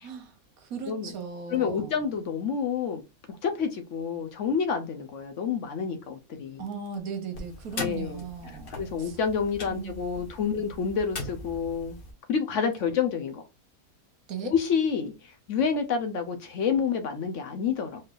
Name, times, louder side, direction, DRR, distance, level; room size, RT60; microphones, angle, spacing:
voice 1, 0.0-1.9 6.6-9.2 9.7-9.9 14.3-14.5, right 5 dB, 75° right, 1.3 m, -37 dB
voice 2, 1.5-3.0 3.4-6.6 7.8-8.2 8.7-12.0 12.3-13.4 14.4-15.1 15.5-18.0, left 6 dB, 65° left, 0.9 m, -28 dB
sound 1, 7.3-12.1, left 2 dB, 40° left, 1.2 m, -40 dB
4.4 x 3.2 x 2.4 m
omnidirectional pair, 1.5 m